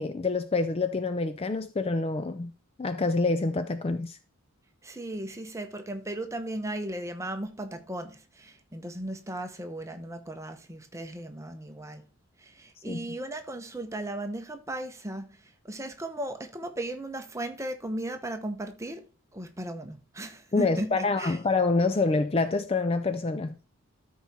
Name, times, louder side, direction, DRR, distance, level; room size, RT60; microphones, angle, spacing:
voice 1, 0.0-2.5 2.8-4.2 12.9-13.2 20.5-23.5, left 3 dB, 25° left, 0.4 m, -27 dB
voice 2, 4.8-12.0 12.4-19.0 19.3-21.4, right 1 dB, 15° right, 0.9 m, -36 dB
13.0 x 4.7 x 4.2 m
head